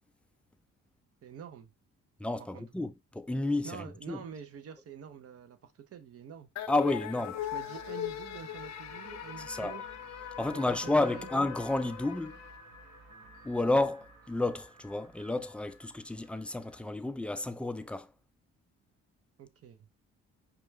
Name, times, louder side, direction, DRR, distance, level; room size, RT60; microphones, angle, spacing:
voice 1, 1.2-1.7 2.5-2.6 3.6-6.5 7.5-9.8 10.8-11.3 19.4-19.9, right 8 dB, 50° right, 0.7 m, -47 dB
voice 2, 2.2-4.2 6.7-7.4 9.5-9.8 10.4-12.4 13.4-18.1, left 2 dB, 5° left, 0.3 m, -31 dB
sound 1, 6.6-13.1, left 12 dB, 65° left, 0.5 m, -40 dB
sound 2, 7.3-16.8, right 1 dB, 70° right, 1.4 m, -53 dB
4.9 x 2.4 x 3.1 m
cardioid pair, 90°, 30 cm